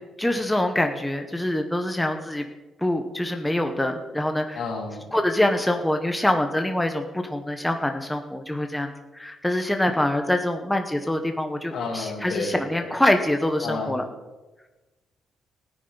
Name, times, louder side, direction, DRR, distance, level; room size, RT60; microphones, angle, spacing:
voice 1, 0.2-2.5 2.8-4.6 5.1-14.0, left 1 dB, 5° left, 5 dB, 1.1 m, -25 dB
voice 2, 4.6-5.0 11.7-12.8 13.6-14.1, left 3 dB, 70° left, 1 dB, 2.5 m, -31 dB
16.5 x 9.9 x 4.0 m, 1.1 s
cardioid pair, 90°, 0 cm